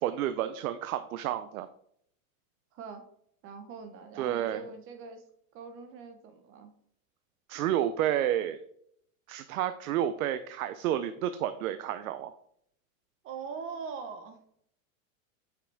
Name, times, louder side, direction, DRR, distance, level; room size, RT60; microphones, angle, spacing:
voice 1, 0.0-1.7 4.2-4.7 7.5-8.6 9.3-12.3, right 11 dB, 90° right, 11 dB, 0.7 m, -30 dB
voice 2, 2.7-3.0 3.4-5.2 5.5-6.7 13.2-14.4, right 5 dB, 30° right, 7 dB, 1.0 m, -42 dB
8.4 x 5.9 x 3.5 m, 0.69 s
supercardioid pair, 155°, 42 cm